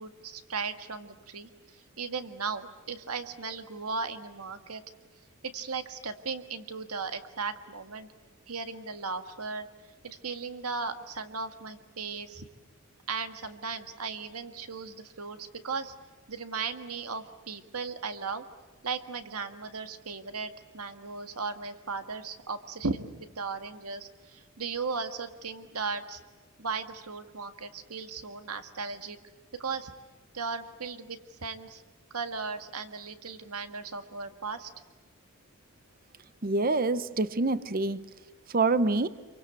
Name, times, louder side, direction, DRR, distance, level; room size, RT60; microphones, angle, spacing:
voice 1, 0.0-4.8 5.5-8.1 8.5-9.7 10.0-12.5 13.1-15.9 16.3-18.4 18.8-26.2 26.6-29.2 29.6-29.9 30.3-31.8 32.1-34.7, right 4 dB, 85° right, 8 dB, 1.7 m, -36 dB
voice 2, 36.4-38.0 38.5-39.1, right 3 dB, 40° right, 14 dB, 0.8 m, -26 dB
28.0 x 24.0 x 8.3 m, 1.3 s
head